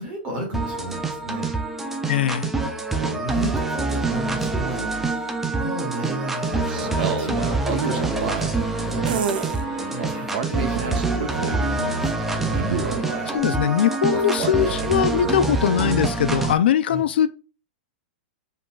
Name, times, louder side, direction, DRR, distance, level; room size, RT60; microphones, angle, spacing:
voice 1, 0.0-1.5 2.8-8.5 8.9-9.3 9.9-12.8 16.8-17.0, equal, 20° right, 1.9 m, -33 dB
sound 1, 0.5-16.5, right 3 dB, 5° right, 0.3 m, -26 dB
voice 2, 2.1-2.5 13.2-17.3, left 9 dB, 80° left, 0.4 m, -21 dB
sound 2, 6.3-8.7 9.0-9.6 10.0-11.7 12.3-13.5 14.1-16.0, right 6 dB, 60° right, 0.6 m, -30 dB
sound 3, 6.7-13.4, left 1 dB, 20° left, 1.5 m, -39 dB
5.1 x 3.7 x 2.3 m
supercardioid pair, 175°, 6 cm